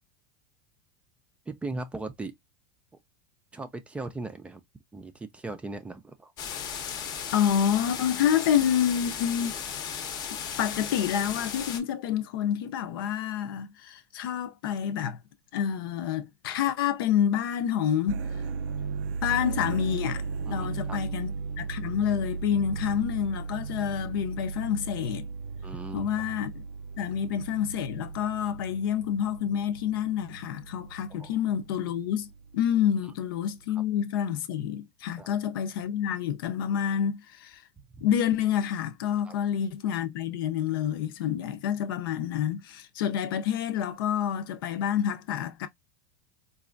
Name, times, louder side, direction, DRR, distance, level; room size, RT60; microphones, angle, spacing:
voice 1, 1.5-2.3 3.5-4.6 4.9-6.3 20.5-21.0 25.6-26.3 31.1-31.3 35.1-35.3 37.9-38.1 39.2-39.3, right 3 dB, 10° right, 0.4 m, -38 dB
sound 1, 6.4-11.8, left 7 dB, 35° left, 0.7 m, -35 dB
voice 2, 7.3-9.6 10.6-15.2 15.5-18.2 19.2-20.2 20.5-25.3 25.9-26.6 27.0-32.3 32.5-37.6 38.0-45.7, left 9 dB, 75° left, 0.7 m, -28 dB
sound 2, 18.1-33.2, right 5 dB, 75° right, 0.4 m, -36 dB
4.1 x 2.3 x 2.5 m
supercardioid pair, 140°, 12 cm